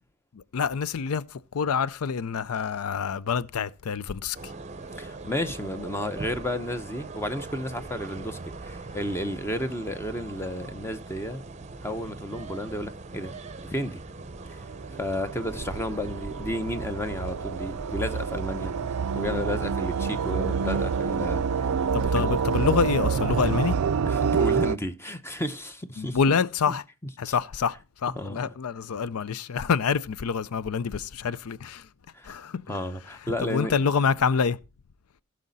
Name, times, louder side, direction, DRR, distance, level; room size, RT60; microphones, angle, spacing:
voice 1, 0.3-1.2 1.5-4.4 21.9-23.8 26.0-26.8 27.2-31.8 32.3-32.6 33.4-34.6, left 6 dB, 90° left, 0.5 m, -26 dB
sound 1, 4.3-23.6, right 3 dB, 30° right, 0.7 m, -41 dB
voice 2, 5.0-11.4 11.8-14.0 14.5-14.6 14.9-18.7 19.1-21.7 22.2-22.3 24.1-26.2 26.7-26.8 27.2-27.4 28.1-28.5 32.1-33.8, left 1 dB, 10° left, 0.7 m, -32 dB
sound 2, 14.7-24.8, right 6 dB, 90° right, 0.5 m, -27 dB
16.0 x 6.4 x 4.0 m
head